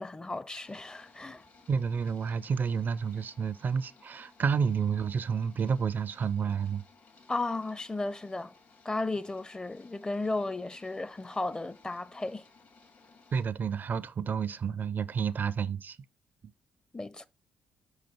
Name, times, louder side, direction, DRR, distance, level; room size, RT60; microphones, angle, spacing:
voice 1, 0.0-1.4 7.3-8.5 8.8-12.4 16.9-17.3, left 2 dB, 20° left, 0.6 m, -34 dB
sound 1, 0.6-13.4, left 4 dB, 60° left, 1.8 m, -59 dB
voice 2, 1.7-6.8 13.3-16.0, right 6 dB, 50° right, 0.4 m, -30 dB
6.4 x 5.0 x 4.3 m
hypercardioid pair, 50°, 4 cm